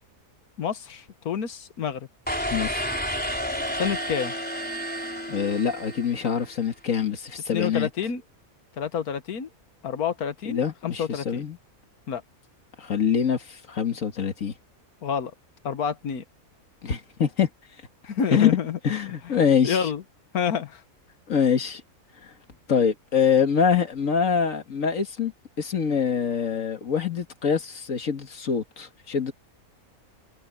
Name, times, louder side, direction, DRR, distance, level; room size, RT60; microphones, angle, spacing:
voice 1, 0.6-2.1 3.7-4.3 7.5-8.2 8.8-9.5 9.8-11.5 12.1-12.2 15.0-15.3 15.6-16.2 18.0-18.8 19.2-20.0 20.3-20.8, left 7 dB, 85° left, 1.7 m, -28 dB
sound 1, 2.3-6.5, equal, 5° left, 3.9 m, -31 dB
voice 2, 2.5-2.9 5.3-7.9 10.5-11.6 12.8-14.5 16.8-17.5 18.3-18.5 18.8-19.8 21.3-21.8 22.2-22.3 22.7-25.3 25.6-29.3, left 7 dB, 65° left, 1.9 m, -24 dB
omnidirectional pair, 1.5 m